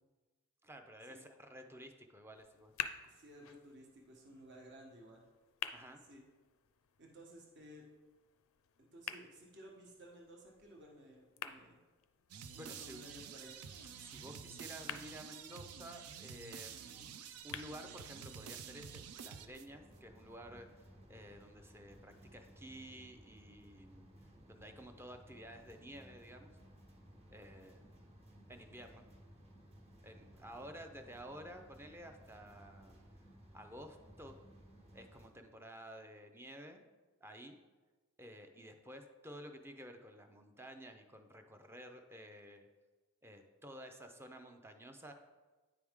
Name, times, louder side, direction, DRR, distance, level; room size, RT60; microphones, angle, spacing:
voice 1, 0.6-2.7 5.7-6.0 12.6-13.0 14.0-17.1 17.4-20.7 21.1-24.1 24.5-26.5 27.3-28.0 28.5-29.0 30.0-33.0 33.5-34.4 34.9-36.8 37.2-37.6 38.2-42.7 43.2-45.1, equal, 10° right, 6 dB, 0.5 m, -52 dB
sound 1, 2.3-18.3, left 9 dB, 65° left, 0.4 m, -51 dB
voice 2, 3.1-5.2 6.0-6.2 7.0-7.8 8.8-11.8 12.5-13.6, right 1 dB, 50° right, -1 dB, 1.2 m, -56 dB
sound 2, 12.3-19.9, right 7 dB, 80° right, 0.5 m, -50 dB
sound 3, 19.6-35.3, equal, 30° right, 1.2 m, -59 dB
9.3 x 4.7 x 3.6 m, 1.3 s
head